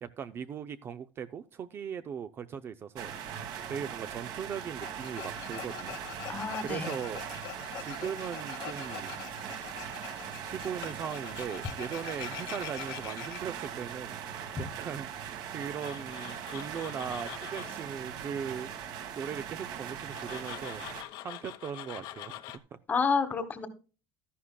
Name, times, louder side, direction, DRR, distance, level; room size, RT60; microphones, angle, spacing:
voice 1, 0.0-3.1 3.7-6.0 6.6-7.2 7.8-9.2 10.4-14.2 14.6-15.1 15.5-18.7 19.2-20.8 21.2-22.3, right 7 dB, 25° right, 11 dB, 0.4 m, -39 dB
sound 1, 3.0-21.0, right 8 dB, 55° right, 1.7 m, -40 dB
Tools, 4.8-13.4 15.6-17.8 20.1-22.6, left 14 dB, 55° left, 1.0 m, -44 dB
voice 2, 6.3-6.9 22.9-23.7, left 5 dB, 20° left, 10 dB, 1.2 m, -29 dB
13.0 x 11.0 x 2.2 m, 0.34 s
cardioid pair, 175°, 9 cm